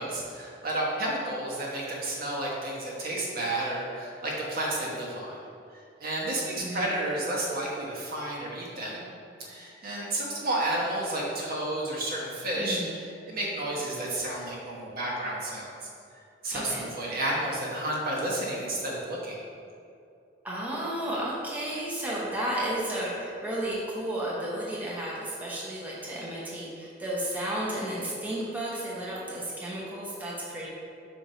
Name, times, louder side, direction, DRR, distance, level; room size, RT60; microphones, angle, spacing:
voice 1, 0.0-5.4 6.0-9.0 9.4-15.7 16.4-19.4, right 1 dB, 55° right, -4 dB, 1.2 m, -31 dB
voice 2, 12.5-12.9 16.5-16.9 20.4-30.7, right 1 dB, 10° right, -7 dB, 0.9 m, -33 dB
5.4 x 4.3 x 4.3 m, 2.5 s
head